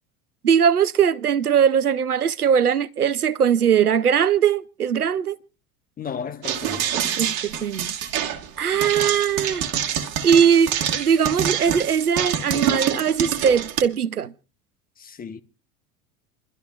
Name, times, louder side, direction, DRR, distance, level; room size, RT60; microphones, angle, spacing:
voice 1, 0.4-5.4 7.2-8.0 8.6-9.7 10.2-14.3, right 7 dB, 90° right, 0.6 m, -20 dB
voice 2, 6.0-6.9 8.7-8.8 15.0-15.4, left 6 dB, 20° left, 1.0 m, -34 dB
sound 1, 6.4-13.8, right 9 dB, 50° right, 1.6 m, -26 dB
28.5 x 12.5 x 2.4 m
figure-of-eight pair, 75°, 44 cm